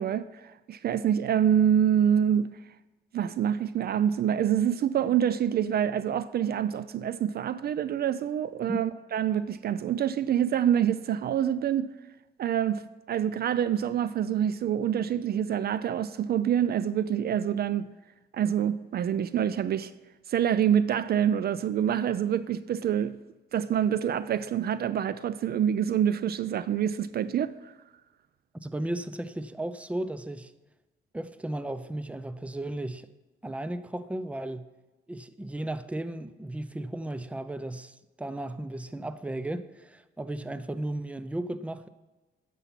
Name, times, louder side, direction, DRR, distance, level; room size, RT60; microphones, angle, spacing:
voice 1, 0.0-2.6 3.1-11.9 12.4-17.9 18.3-19.9 20.3-23.2 23.5-27.7, right 9 dB, 50° right, 0.4 m, -26 dB
voice 2, 28.6-30.5 31.1-33.1 33.4-34.7 35.1-41.9, right 1 dB, 5° right, 0.6 m, -35 dB
10.0 x 6.9 x 5.8 m
cardioid pair, 90°, 20 cm